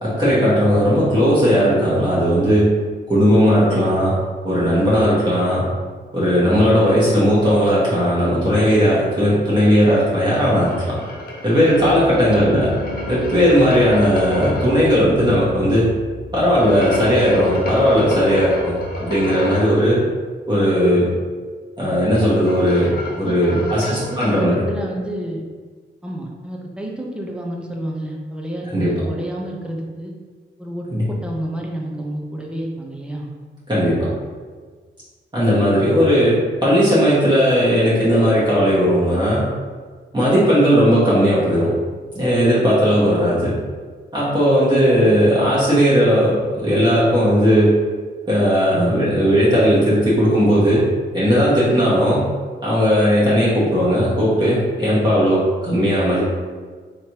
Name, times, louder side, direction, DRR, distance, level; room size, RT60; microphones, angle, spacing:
voice 1, 0.0-2.7 3.1-4.1 4.4-5.6 6.1-11.0 11.4-12.7 13.1-15.9 16.3-18.7 19.0-20.0 20.5-21.1 21.8-22.9 23.2-24.6 28.7-28.9 30.9-31.0 33.7-34.1 35.3-39.5 40.1-41.7 42.1-43.6 44.1-47.7 48.3-50.9 51.1-52.3 52.6-56.2, equal, 20° right, -10 dB, 1.2 m, -16 dB
sound 1, 10.3-14.9 16.5-19.8 21.9-24.5, left 1 dB, 50° left, 0.7 m, -30 dB
Piano, 11.7-19.2, equal, 90° right, 0.6 m, -35 dB
voice 2, 23.2-25.4 26.0-30.1 30.6-33.3, right 1 dB, 5° right, -1 dB, 0.7 m, -30 dB
3.2 x 3.0 x 2.9 m, 1.5 s
cardioid pair, 80°, 20 cm